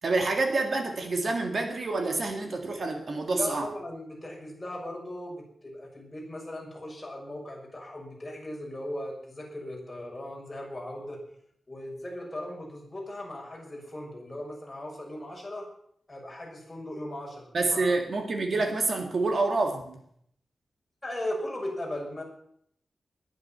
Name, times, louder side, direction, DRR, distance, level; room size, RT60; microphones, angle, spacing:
voice 1, 0.0-3.7 17.5-20.0, right 3 dB, 50° right, 4 dB, 2.1 m, -27 dB
voice 2, 3.3-11.2 11.7-15.6 16.1-18.0 21.0-22.2, left 1 dB, 15° left, -2 dB, 6.5 m, -38 dB
21.0 x 11.0 x 5.8 m, 0.67 s
wide cardioid pair, 150°, 0 cm